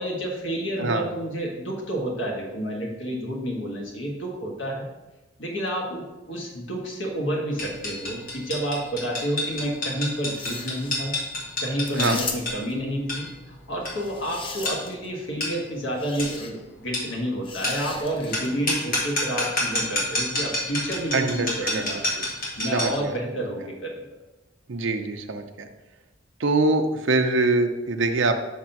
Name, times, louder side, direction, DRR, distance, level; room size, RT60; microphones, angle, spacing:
voice 1, 0.0-4.9 5.4-11.1 11.6-22.0 22.6-24.0, right 1 dB, 70° left, -2 dB, 1.6 m, -30 dB
sound 1, 7.6-23.0, left 1 dB, 50° left, 1.9 m, -30 dB
sound 2, 10.2-10.9 11.8-12.7 13.9-15.1 16.0-16.5 17.4-18.5, left 4 dB, 25° left, 0.6 m, -36 dB
voice 2, 21.1-22.2 22.7-23.1 24.7-25.7 26.4-28.4, right 3 dB, 70° right, 6 dB, 0.6 m, -24 dB
6.0 x 3.7 x 5.8 m, 1.1 s
head